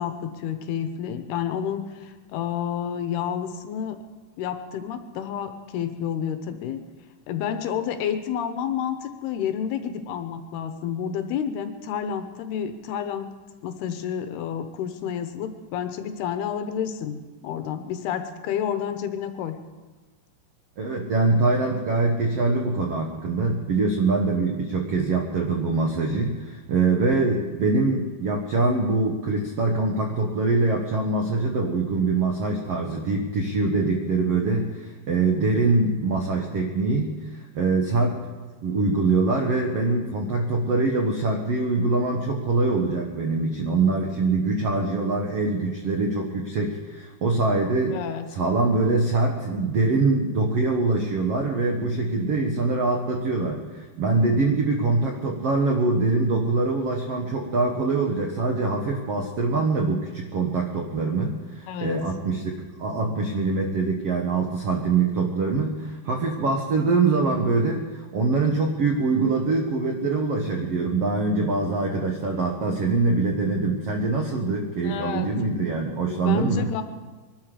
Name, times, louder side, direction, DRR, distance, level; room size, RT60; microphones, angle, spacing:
voice 1, 0.0-4.0 4.4-6.8 7.3-13.3 13.6-19.6 47.9-48.3 61.7-62.0 74.8-75.3 76.1-76.8, left 8 dB, 75° left, 8 dB, 2.9 m, -30 dB
voice 2, 20.8-38.2 38.6-48.0 48.3-76.7, right 3 dB, 80° right, 2 dB, 1.3 m, -24 dB
22.5 x 12.5 x 5.0 m, 1.3 s
omnidirectional pair, 4.7 m